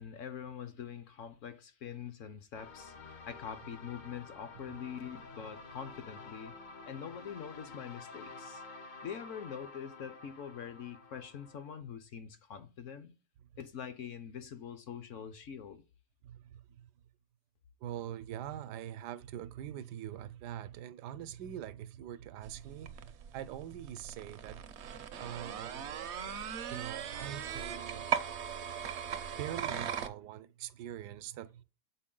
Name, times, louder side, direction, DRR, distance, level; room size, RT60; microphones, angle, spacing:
voice 1, 0.0-6.5 6.9-8.6 9.0-13.1 13.6-15.8, left 8 dB, 65° left, 0.8 m, -44 dB
sound 1, 2.5-11.8, left 3 dB, 85° left, 0.4 m, -50 dB
voice 2, 16.2-16.9 17.8-24.6 25.2-26.1 26.7-28.2 29.3-31.6, right 11 dB, 85° right, 1.2 m, -43 dB
sound 2, 22.4-30.1, right 8 dB, 65° right, 0.7 m, -39 dB
7.6 x 4.4 x 3.7 m
omnidirectional pair, 1.7 m